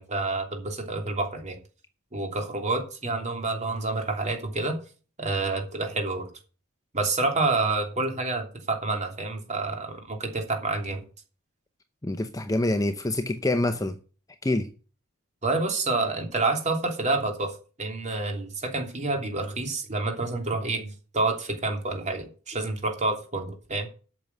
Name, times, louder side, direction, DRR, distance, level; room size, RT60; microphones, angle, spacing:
voice 1, 0.0-1.6 2.1-4.8 5.2-6.3 6.9-11.0 15.4-23.9, right 3 dB, 30° right, 3.0 m, -28 dB
voice 2, 12.0-14.0 14.4-14.7, left 1 dB, 15° left, 0.7 m, -26 dB
8.4 x 6.9 x 8.3 m
head